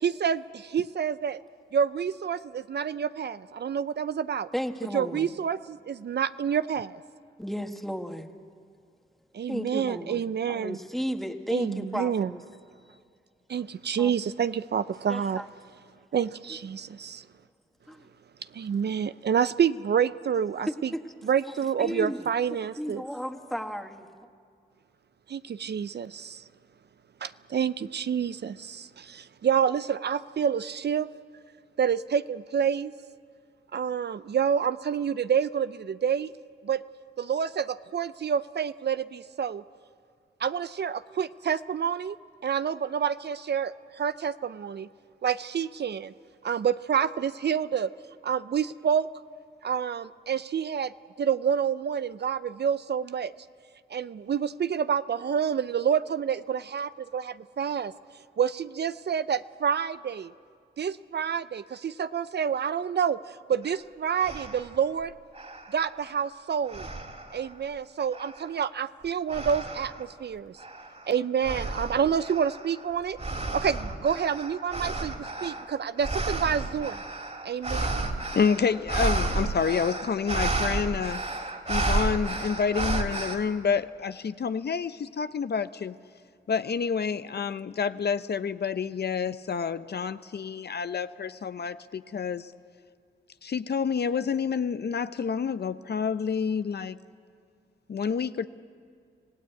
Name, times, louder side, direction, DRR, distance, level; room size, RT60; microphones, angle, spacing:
voice 1, 0.0-1.4 1.7-4.5 4.9-7.0 9.3-10.8 11.5-12.3 13.5-15.4 16.1-17.2 18.5-20.9 21.2-23.0 25.3-26.4 27.2-31.1 31.8-32.9 33.7-36.3 36.6-36.8 37.2-39.6 40.4-42.2 42.4-44.9 45.2-46.1 46.4-47.9 48.2-49.1 49.6-50.9 51.2-53.3 53.9-57.9 58.4-60.3 60.8-65.2 65.7-66.9 67.3-70.6 71.1-73.2 73.5-77.0 77.4-78.1, right 7 dB, 55° right, 14 dB, 0.6 m, -28 dB
voice 2, 4.5-5.3 7.4-8.3 9.5-12.4 13.5-13.6 14.0-14.1 15.1-15.5 17.9-18.0 20.9-21.0 21.8-22.2 22.5-24.1, equal, ahead, 6 dB, 1.8 m, -34 dB
sound 1, 63.7-63.8 64.2-64.8 65.3-66.3 66.7-67.5 68.1-68.6 69.3-70.0 70.6-83.4, right 2 dB, 35° right, 3.2 m, -32 dB
voice 3, 78.3-81.2 81.7-86.0 86.5-92.5 93.4-97.0 97.9-98.5, left 6 dB, 55° left, 12 dB, 0.7 m, -28 dB
26.5 x 16.5 x 8.4 m, 2.2 s
cardioid pair, 50°, 20 cm